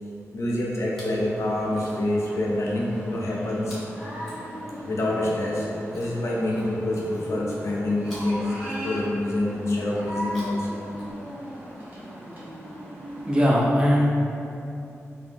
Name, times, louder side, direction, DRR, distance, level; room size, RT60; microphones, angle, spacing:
voice 1, 0.3-3.8 4.8-5.7 5.9-10.7, left 1 dB, 65° left, -4 dB, 0.5 m, -26 dB
Chewing mastication, 0.8-1.3 1.6-2.3 3.6-5.0 5.9-7.1 8.0-9.3 10.1-11.5 12.5-12.6, equal, ahead, 1.1 m, -49 dB
sound 1, 1.1-13.4, equal, 35° right, 0.8 m, -38 dB
voice 2, 13.2-14.1, equal, 20° right, -4 dB, 0.4 m, -20 dB
2.7 x 2.6 x 2.5 m, 2.7 s
wide cardioid pair, 120°, 5 cm